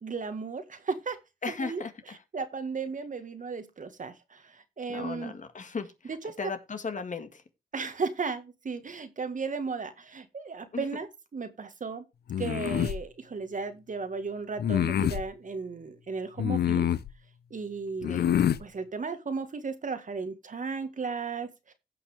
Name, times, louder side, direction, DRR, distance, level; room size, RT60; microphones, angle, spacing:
voice 1, 0.0-1.2 1.5-1.8 2.3-5.4 6.1-6.4 7.7-12.1 12.4-16.9 17.5-18.2 18.6-21.7, right 4 dB, 55° right, 1.7 m, -35 dB
voice 2, 1.4-2.2 4.9-7.4 10.7-10.9 18.1-18.3, left 4 dB, 50° left, 1.9 m, -36 dB
sound 1, 12.3-13.0 14.6-15.2 16.4-17.1 18.0-18.6, left 10 dB, 90° left, 0.6 m, -26 dB
16.5 x 5.9 x 3.4 m
cardioid pair, 70°, 16 cm